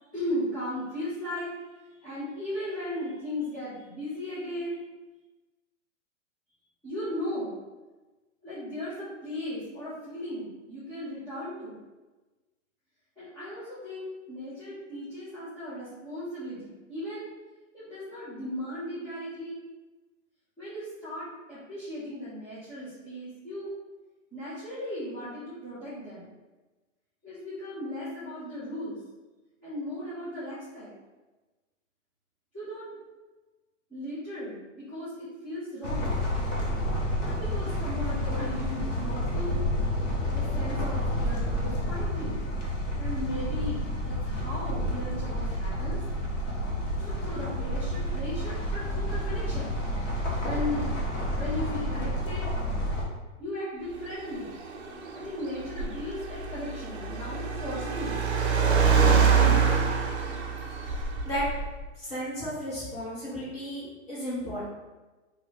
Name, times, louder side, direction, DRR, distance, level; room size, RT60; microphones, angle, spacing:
voice 1, 0.1-1.5 2.0-4.8 6.8-7.5 8.4-11.8 13.2-17.3 17.7-19.6 20.6-23.7 24.3-26.3 27.2-29.0 29.6-30.9 32.5-32.9 33.9-36.2 37.2-39.6 40.3-42.4 43.0-46.0 47.0-49.8 50.4-50.9 51.4-52.5 53.4-54.5 55.1-58.3, left 1 dB, 5° left, -18 dB, 0.5 m, -36 dB
sound 1, 35.8-53.0, equal, 70° left, 1.2 m, -30 dB
Car, 53.9-61.9, right 6 dB, 55° right, 0.6 m, -26 dB
voice 2, 60.8-61.4 62.0-64.7, equal, 25° left, -9 dB, 1.4 m, -34 dB
2.7 x 2.6 x 3.5 m, 1.2 s
hypercardioid pair, 160°, 39 cm